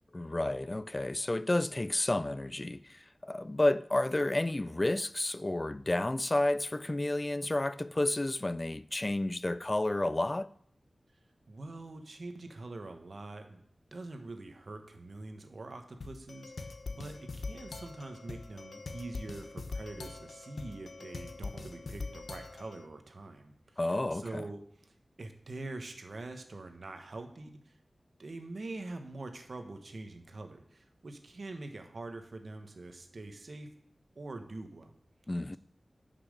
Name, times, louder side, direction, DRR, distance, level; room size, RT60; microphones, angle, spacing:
voice 1, 0.1-10.5 23.8-24.4 35.3-35.6, left 1 dB, 25° left, 0.3 m, -31 dB
voice 2, 11.5-13.6 13.9-27.8 28.2-33.7 34.1-34.9, right 2 dB, 65° right, 1.4 m, -44 dB
sound 1, 16.0-22.9, left 3 dB, 80° left, 0.8 m, -43 dB
10.5 x 6.0 x 6.6 m
wide cardioid pair, 85°, 0 cm